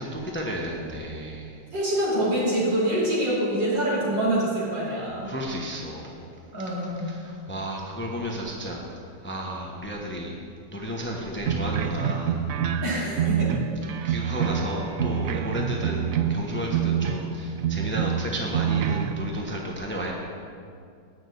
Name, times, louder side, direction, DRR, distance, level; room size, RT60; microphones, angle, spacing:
voice 1, 0.0-1.6 5.2-6.3 6.6-10.4 10.7-12.4 14.0-20.1, equal, 10° left, -1 dB, 0.8 m, -33 dB
voice 2, 1.7-5.3 6.5-7.1 12.8-13.5, right 1 dB, 90° right, -7 dB, 3.5 m, -25 dB
sound 1, 11.4-17.3 17.6-19.1, right 8 dB, 70° right, 0.8 m, -26 dB
9.0 x 6.0 x 7.9 m, 2.3 s
omnidirectional pair, 1.9 m